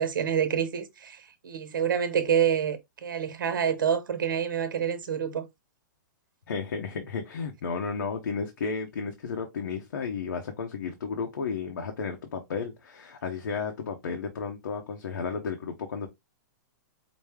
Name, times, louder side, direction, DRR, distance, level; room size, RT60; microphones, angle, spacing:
voice 1, 0.0-5.5, right 8 dB, 85° right, 1.0 m, -27 dB
voice 2, 6.5-16.1, left 5 dB, 85° left, 0.9 m, -33 dB
5.1 x 2.1 x 3.5 m
hypercardioid pair, 165°, 11 cm